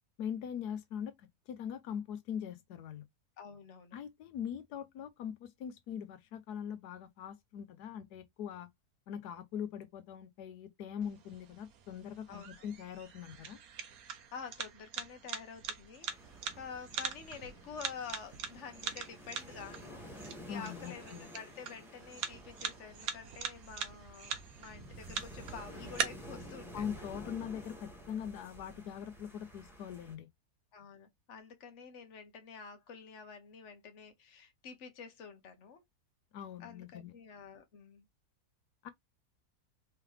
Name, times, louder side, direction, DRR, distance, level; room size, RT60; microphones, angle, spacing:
voice 1, 0.2-3.0 3.9-8.7 9.1-13.6 20.5-21.3 26.7-30.3 36.3-37.1 38.8-38.9, left 8 dB, 90° left, 1.3 m, -42 dB
voice 2, 3.4-4.0 12.3-12.5 14.3-16.1 16.6-24.3 24.6-27.3 30.7-35.8 36.6-38.0, left 6 dB, 50° left, 1.3 m, -49 dB
sound 1, 11.0-26.0, right 7 dB, 70° right, 1.3 m, -43 dB
sound 2, 16.0-30.1, right 1 dB, ahead, 1.8 m, -51 dB
4.7 x 3.3 x 3.2 m
omnidirectional pair, 1.7 m